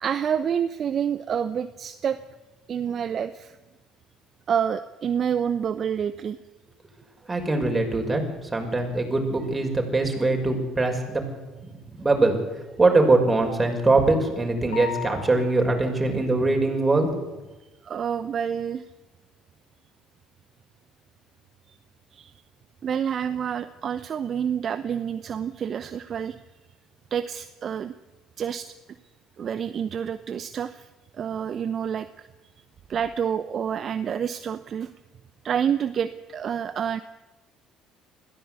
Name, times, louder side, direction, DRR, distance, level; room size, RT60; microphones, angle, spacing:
voice 1, 0.0-2.2 2.7-3.6 4.5-6.4 17.8-18.8 21.7-21.8 22.1-22.3 22.8-26.4 27.1-27.9 28.4-28.7 29.4-30.9 31.1-32.3 32.9-34.9 35.4-37.0, right 8 dB, 45° right, 12 dB, 0.8 m, -28 dB
voice 2, 7.3-11.2 11.6-17.1, right 2 dB, 20° right, 3 dB, 6.0 m, -22 dB
sound 1, 14.7-15.8, left 9 dB, 80° left, 4.3 m, -35 dB
21.0 x 15.5 x 8.4 m, 1.1 s
hypercardioid pair, 55°, 0 cm